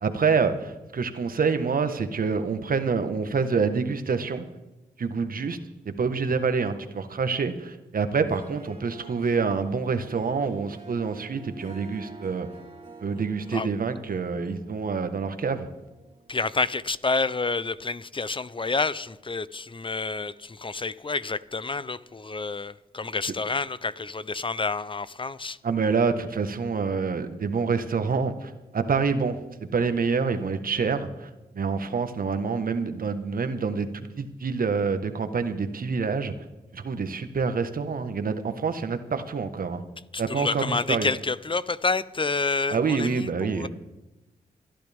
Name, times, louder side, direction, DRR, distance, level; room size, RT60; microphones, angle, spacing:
voice 1, 0.0-4.4 5.0-5.6 5.8-12.5 13.0-15.7 25.6-29.4 29.7-36.3 36.7-39.8 40.2-41.1 42.7-43.7, right 5 dB, 60° right, 1.5 m, -27 dB
Harp, 8.1-16.7, right 3 dB, 35° right, 3.0 m, -48 dB
voice 2, 16.3-25.6 40.1-43.7, left 3 dB, 30° left, 0.8 m, -29 dB
28.5 x 11.0 x 3.6 m
supercardioid pair, 40°, 17 cm